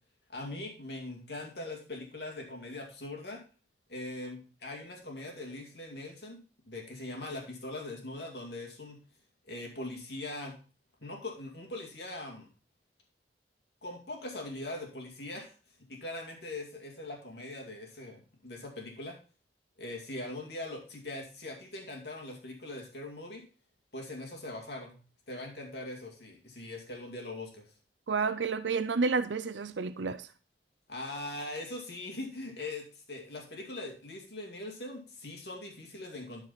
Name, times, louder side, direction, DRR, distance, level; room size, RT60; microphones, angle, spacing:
voice 1, 0.3-3.4 3.9-6.4 6.7-9.0 9.5-10.5 11.0-12.5 13.8-15.5 15.9-19.2 19.8-23.4 23.9-24.9 25.3-27.6 30.9-36.4, left 2 dB, 70° left, 2.3 m, -41 dB
voice 2, 28.1-30.3, right 4 dB, 90° right, 0.5 m, -30 dB
12.5 x 4.8 x 3.9 m
head